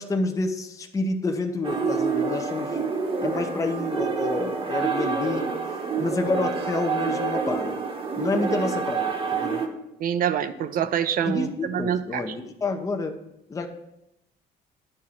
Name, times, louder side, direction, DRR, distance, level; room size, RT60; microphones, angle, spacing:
voice 1, 0.0-2.8 3.2-5.5 6.0-7.8 8.2-9.6 11.3-13.1 13.5-13.7, left 3 dB, 20° left, 4 dB, 0.7 m, -28 dB
sound 1, 1.6-9.7, right 5 dB, 35° right, 1.1 m, -27 dB
voice 2, 10.0-12.2, right 9 dB, 55° right, 12 dB, 0.6 m, -26 dB
9.8 x 3.7 x 5.8 m, 0.87 s
cardioid pair, 110°, 17 cm